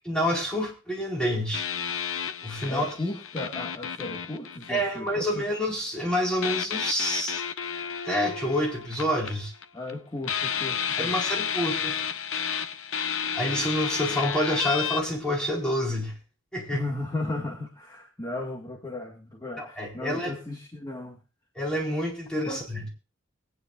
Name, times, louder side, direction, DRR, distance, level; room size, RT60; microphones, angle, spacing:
voice 1, 0.0-1.6 2.4-2.9 4.7-7.4 8.0-9.5 11.0-11.9 13.3-16.1 16.5-16.8 19.6-20.3 21.6-22.8, equal, 5° left, -3 dB, 4.4 m, -28 dB
sound 1, 1.5-5.4 6.4-9.9 10.2-15.0, left 8 dB, 85° left, 0.7 m, -31 dB
voice 2, 2.7-5.4 9.7-11.1 16.7-21.2 22.5-22.7, left 2 dB, 20° left, 0 dB, 1.8 m, -35 dB
23.5 x 9.6 x 2.4 m, 0.31 s
head